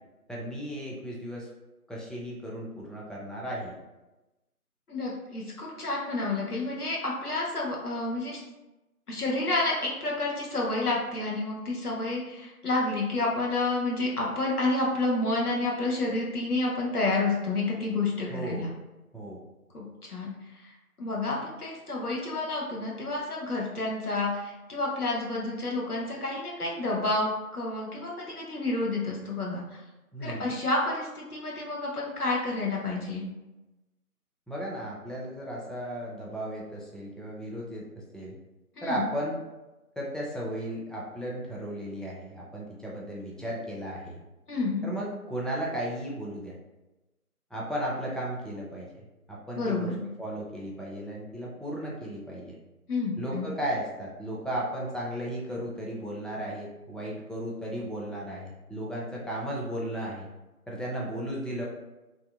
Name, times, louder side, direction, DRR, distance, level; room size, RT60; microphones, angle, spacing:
voice 1, 0.3-1.5 1.9-3.7 18.3-18.7 19.1-19.4 30.1-30.6 34.5-37.8 38.1-38.3 38.8-39.4 40.0-44.2 44.8-46.5 47.5-48.9 49.3-52.5 53.2-60.3 60.7-61.6, right 1 dB, ahead, -4 dB, 0.4 m, -35 dB
voice 2, 4.9-8.4 9.1-18.7 19.7-20.3 20.6-20.7 21.0-29.8 30.2-33.3 38.8-39.1 44.5-44.9 49.5-50.0 52.9-53.5, left 2 dB, 75° left, -3 dB, 0.8 m, -29 dB
2.6 x 2.1 x 2.2 m, 1.0 s
figure-of-eight pair, 175°, 45 cm